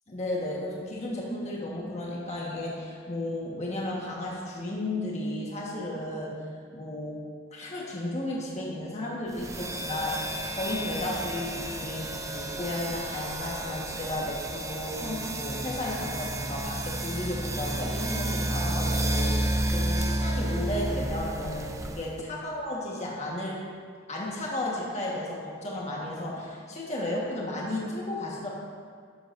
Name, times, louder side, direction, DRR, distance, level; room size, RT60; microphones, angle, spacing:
voice 1, 0.1-6.3 6.7-7.1 7.5-23.6 24.1-28.5, left 1 dB, 35° left, -4 dB, 1.4 m, -34 dB
sound 1, 9.4-22.2, right 1 dB, 15° right, 0.5 m, -31 dB
12.5 x 9.7 x 2.6 m, 2.1 s
head